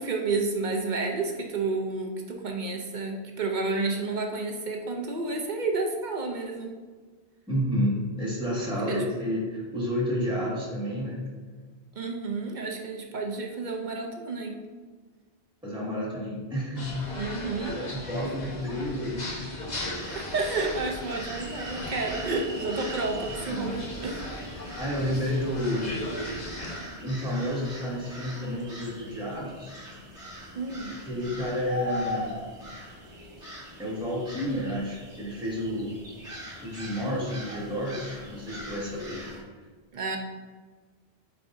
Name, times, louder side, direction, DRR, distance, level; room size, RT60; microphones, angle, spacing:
voice 1, 0.0-6.7 8.9-9.0 12.0-14.6 17.2-17.8 18.2-18.3 20.1-24.2 25.1-25.2 30.5-30.9 39.9-40.2, right 3 dB, 50° right, 2 dB, 0.8 m, -30 dB
voice 2, 7.5-11.2 15.6-19.6 23.4-23.8 24.5-26.1 27.0-29.7 30.9-32.4 33.8-36.0 36.6-39.2, equal, 5° right, -6 dB, 1.7 m, -31 dB
sound 1, 16.7-26.8, left 1 dB, 40° left, 1.2 m, -38 dB
sound 2, 19.9-39.4, left 1 dB, 30° right, 1.7 m, -41 dB
8.6 x 4.5 x 2.6 m, 1.4 s
omnidirectional pair, 1.1 m